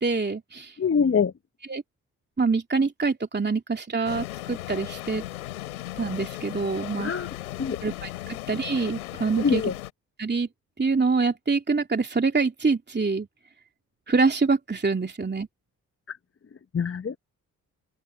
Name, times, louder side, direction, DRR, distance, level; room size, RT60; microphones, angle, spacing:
voice 1, 0.0-0.8 1.6-1.8 2.4-5.2 6.0-7.1 7.8-9.7 10.2-10.5 10.8-13.3 14.1-15.5, right 4 dB, 25° right, 2.9 m, -25 dB
voice 2, 0.8-1.3 7.0-7.3 7.6-7.8 9.4-9.7 16.7-17.2, left 6 dB, 30° left, 1.2 m, -24 dB
sound 1, 4.0-9.9, left 15 dB, 90° left, 2.6 m, -36 dB
open air
hypercardioid pair, 40°, 42 cm